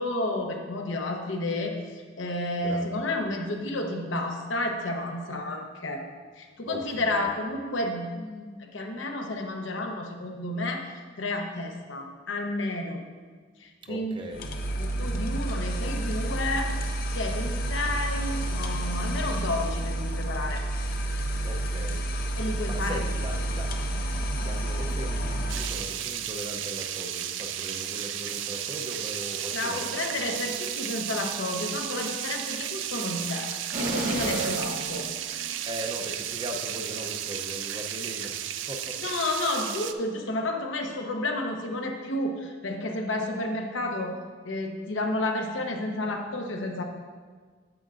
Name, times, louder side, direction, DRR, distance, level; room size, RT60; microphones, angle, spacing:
voice 1, 0.0-1.7 2.2-6.0 6.4-10.9 11.2-13.0 13.6-14.2 14.8-16.7 17.1-20.6 22.4-23.1 23.9-24.3 29.5-33.5 33.8-35.1 39.0-44.1 44.4-46.8, left 2 dB, 70° left, 2 dB, 0.9 m, -31 dB
voice 2, 2.6-3.0 6.7-7.2 13.8-14.5 21.4-22.4 22.7-23.7 24.4-30.2 35.6-39.1, right 1 dB, 25° right, 3 dB, 0.6 m, -39 dB
sound 1, 14.3-25.9, right 1 dB, 50° left, 0.6 m, -30 dB
sound 2, 25.5-39.9, right 10 dB, 70° right, 0.4 m, -34 dB
sound 3, 33.7-35.9 36.3-36.4, right 3 dB, 45° right, 0.9 m, -31 dB
8.9 x 7.7 x 2.5 m, 1.5 s
head